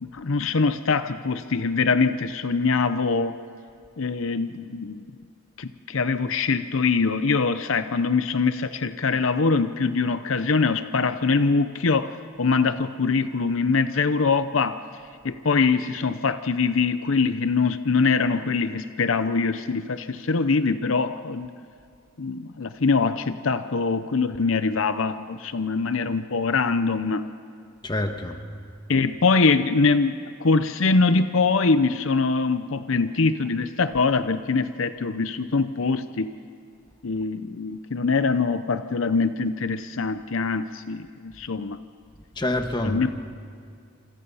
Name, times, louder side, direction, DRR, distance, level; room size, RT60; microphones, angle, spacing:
voice 1, 0.0-3.4 4.0-5.0 5.6-14.8 15.2-21.5 22.2-27.2 28.9-36.3 37.0-41.8 42.8-43.1, left 4 dB, 70° left, 11 dB, 0.7 m, -23 dB
voice 2, 27.8-28.4 42.3-43.1, left 1 dB, 20° left, 5 dB, 1.5 m, -27 dB
27.0 x 27.0 x 5.6 m, 2.3 s
head